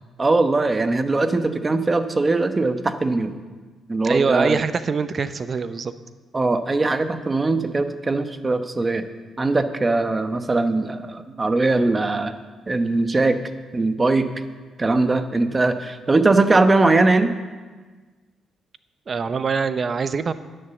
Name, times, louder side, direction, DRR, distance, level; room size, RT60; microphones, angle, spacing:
voice 1, 0.2-3.4 3.9-4.6 6.3-9.0 9.4-12.3 12.7-13.4 13.7-14.3 14.8-17.3, right 3 dB, 25° right, 9 dB, 1.0 m, -20 dB
voice 2, 4.0-5.9 19.1-20.3, right 5 dB, 40° right, 13 dB, 0.7 m, -24 dB
11.0 x 10.5 x 6.9 m, 1.4 s
cardioid pair, 90°, 0 cm